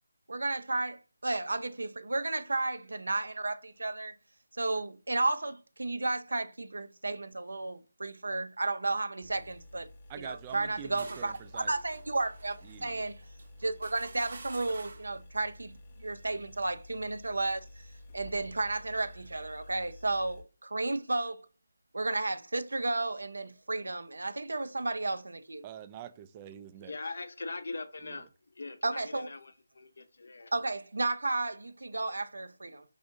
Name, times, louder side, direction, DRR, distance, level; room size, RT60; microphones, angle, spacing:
voice 1, 0.3-4.1 4.6-9.9 10.2-13.2 13.6-17.6 18.1-21.5 21.9-25.7 28.8-29.3 30.5-32.8, right 2 dB, 80° right, 0.5 m, -33 dB
sound 1, 9.2-20.4, left 1 dB, 35° left, 0.8 m, -52 dB
voice 2, 10.1-11.7 12.6-13.0 25.6-27.0 28.0-28.3, right 9 dB, 20° right, 0.3 m, -46 dB
sound 2, 10.5-15.2, right 3 dB, 60° right, 0.9 m, -50 dB
voice 3, 26.9-28.3 28.6-30.5, left 3 dB, 65° left, 0.6 m, -41 dB
4.9 x 2.6 x 2.6 m
figure-of-eight pair, 160°, 0 cm